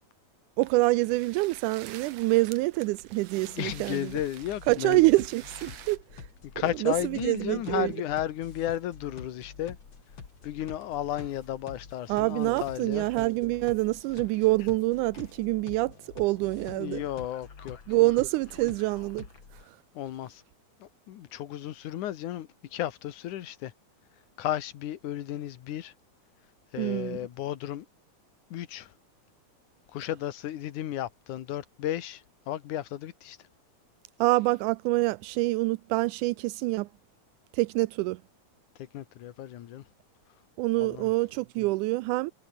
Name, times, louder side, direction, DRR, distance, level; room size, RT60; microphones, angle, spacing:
sound 1, 0.6-6.0, right 12 dB, 65° right, 2.1 m, -48 dB
voice 1, 0.6-4.1 4.7-6.3 6.8-7.9 12.1-17.0 17.9-19.3 19.7-19.8 26.8-27.2 34.2-36.9 37.5-38.2 40.6-42.3, right 20 dB, 85° right, 2.1 m, -26 dB
voice 2, 3.4-5.0 5.7-5.8 6.6-9.8 10.4-13.1 16.7-18.1 19.9-20.4 20.8-23.7 24.4-25.9 26.7-27.9 28.5-28.9 29.9-33.4 38.8-39.9 40.8-41.1, left 12 dB, 75° left, 2.7 m, -34 dB
sound 2, 3.7-19.6, left 5 dB, 40° left, 3.2 m, -47 dB
sound 3, 4.8-15.4, left 3 dB, 55° left, 8.0 m, -61 dB
omnidirectional pair, 3.5 m